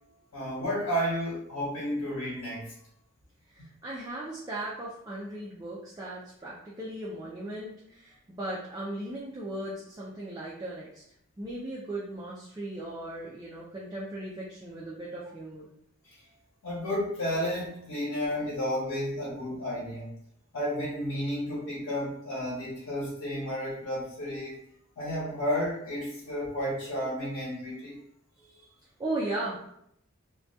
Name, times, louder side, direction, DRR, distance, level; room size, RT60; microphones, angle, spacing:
voice 1, 0.3-2.7 16.0-16.2 16.6-20.1 20.5-24.6 25.0-28.0, equal, 90° left, -6 dB, 0.8 m, -32 dB
voice 2, 3.5-11.0 11.4-15.7 28.3-28.7 29.0-29.7, right 1 dB, 15° right, -5 dB, 0.3 m, -37 dB
2.3 x 2.2 x 2.6 m, 0.74 s
head